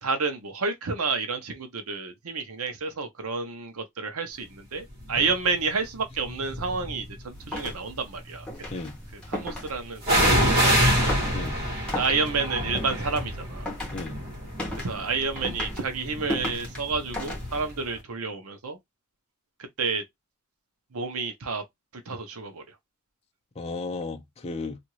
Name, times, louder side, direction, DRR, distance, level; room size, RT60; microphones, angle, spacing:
voice 1, 0.0-8.8 9.1-11.1 11.9-13.7 14.8-18.8 19.8-20.0 20.9-21.6 21.9-22.6, right 4 dB, 70° right, 0.8 m, -30 dB
sound 1, 5.1-5.4 6.2-7.1 10.0-17.7 17.9-18.0, equal, 45° right, 1.6 m, -26 dB
sound 2, 7.3-17.8, left 1 dB, 5° left, 1.2 m, -36 dB
voice 2, 13.9-14.2 23.6-24.8, left 3 dB, 30° left, 0.4 m, -34 dB
2.9 x 2.5 x 3.0 m
head